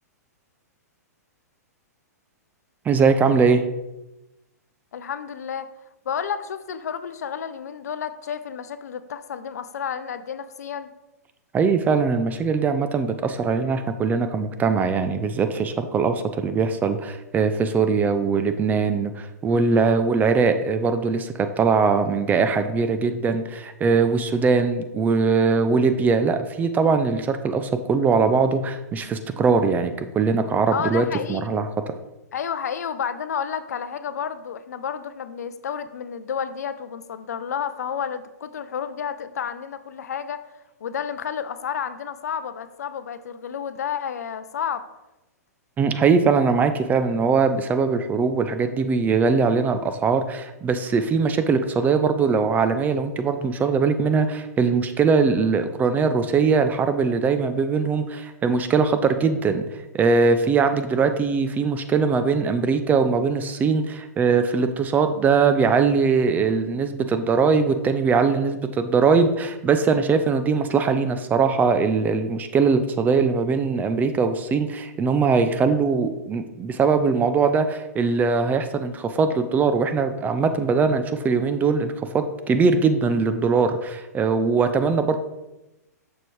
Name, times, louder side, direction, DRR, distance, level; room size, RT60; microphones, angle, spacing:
voice 1, 2.9-3.6 11.5-31.7 45.8-59.6 59.9-85.2, right 5 dB, 20° right, 9 dB, 0.5 m, -21 dB
voice 2, 4.9-5.7 6.1-10.9 30.7-31.7 32.3-40.4 40.8-44.9, left 7 dB, 70° left, 12 dB, 0.5 m, -31 dB
6.7 x 6.5 x 3.2 m, 0.97 s
hypercardioid pair, 115°, 9 cm